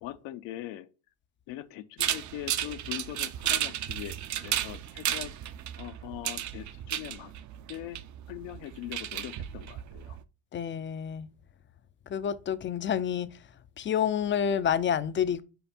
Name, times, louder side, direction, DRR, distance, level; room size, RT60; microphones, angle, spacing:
voice 1, 0.0-0.9 1.5-7.3 7.7-8.0 8.3-10.2, left 13 dB, 80° left, 0.8 m, -41 dB
sound 1, 2.0-10.2, right 11 dB, 45° right, 0.5 m, -34 dB
voice 2, 10.5-11.3 12.1-13.4 13.8-15.4, left 8 dB, 30° left, 0.4 m, -29 dB
5.5 x 5.0 x 4.2 m
cardioid pair, 130°, 44 cm